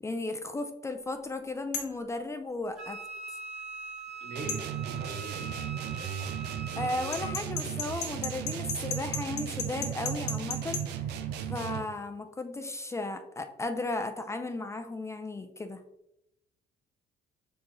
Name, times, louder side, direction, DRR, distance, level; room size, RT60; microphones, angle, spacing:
voice 1, 0.0-3.0 3.3-3.4 6.7-10.8 11.5-15.8, left 2 dB, 15° left, 7 dB, 0.4 m, -35 dB
sound 1, 1.7-2.0 4.5-4.6 7.1-10.8, left 5 dB, 90° left, 1.0 m, -34 dB
Wind instrument woodwind instrument, 2.8-7.4, right 4 dB, ahead, 1.7 m, -42 dB
voice 2, 4.2-5.2, right 2 dB, 60° right, 4 dB, 1.1 m, -41 dB
sound 2, 4.4-12.0, right 9 dB, 80° right, 0.5 m, -35 dB
4.3 x 3.3 x 3.8 m, 0.85 s
cardioid pair, 110°, 17 cm